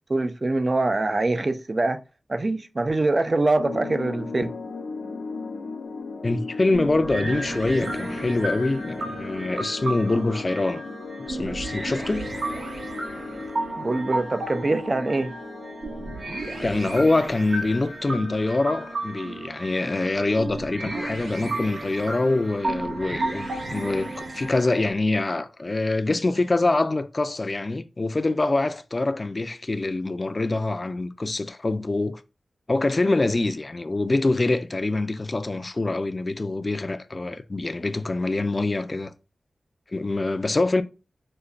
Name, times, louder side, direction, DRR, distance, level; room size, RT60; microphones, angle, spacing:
voice 1, 0.1-2.0 2.3-4.5 13.8-15.3, right 2 dB, 40° right, 0.4 m, -24 dB
sound 1, 3.6-17.9, left 4 dB, 90° left, 0.6 m, -37 dB
voice 2, 6.2-10.8 11.3-12.3 16.6-32.2 32.7-39.1 39.9-40.8, left 2 dB, 40° left, 0.4 m, -25 dB
sound 2, 6.7-24.9, right 2 dB, 80° right, 1.2 m, -33 dB
5.1 x 2.2 x 2.3 m
cardioid pair, 60°, 0 cm